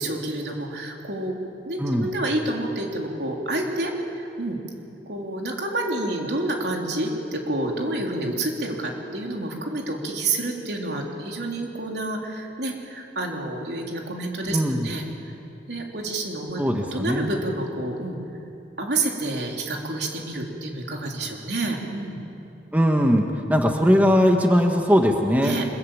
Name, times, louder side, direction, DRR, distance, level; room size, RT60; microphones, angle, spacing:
voice 1, 0.0-1.4 1.7-4.6 5.1-15.0 15.7-16.6 16.9-18.2 18.8-22.2 25.4-25.7, right 2 dB, 75° right, 1 dB, 3.7 m, -29 dB
voice 2, 1.8-2.1 14.5-14.9 16.6-17.3 22.7-25.6, equal, 10° right, 3 dB, 1.5 m, -20 dB
24.5 x 22.5 x 8.9 m, 2.8 s
head